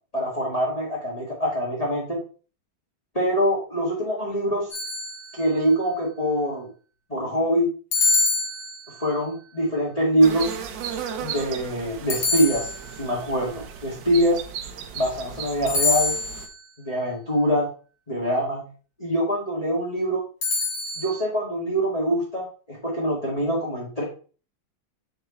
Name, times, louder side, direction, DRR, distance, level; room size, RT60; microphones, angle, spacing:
voice 1, 0.1-2.2 3.1-4.7 5.3-6.7 7.1-7.7 9.0-10.5 11.2-12.7 13.0-14.4 14.9-16.2 16.8-17.7 18.1-18.7 19.0-20.2 21.0-24.0, equal, 20° left, -3 dB, 1.8 m, -24 dB
sound 1, 4.7-5.6 7.9-9.2 12.1-13.2 15.7-16.6 20.4-21.2, left 3 dB, 55° left, 2.9 m, -25 dB
sound 2, 10.2-16.5, right 7 dB, 75° right, 1.5 m, -36 dB
6.9 x 4.5 x 4.2 m, 0.37 s
omnidirectional pair, 2.1 m